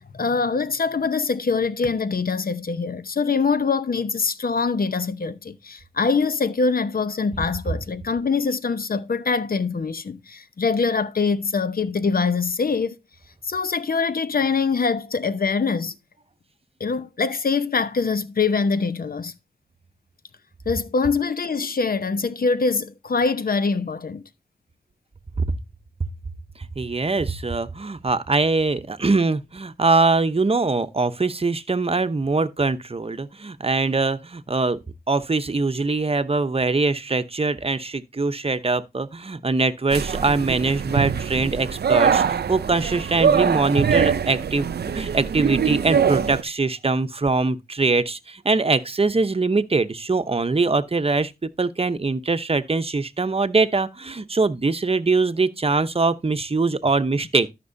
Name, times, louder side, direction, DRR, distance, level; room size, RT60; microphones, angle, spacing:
voice 1, 0.1-13.0 13.4-15.9 16.8-19.3 20.7-24.2, left 4 dB, 65° left, 0.8 m, -23 dB
voice 2, 26.8-34.8 35.1-44.7 44.9-57.5, right 3 dB, 35° right, 0.8 m, -22 dB
sound 1, 39.9-46.4, right 7 dB, 90° right, 0.5 m, -23 dB
13.5 x 6.0 x 2.7 m
cardioid pair, 50°, 16 cm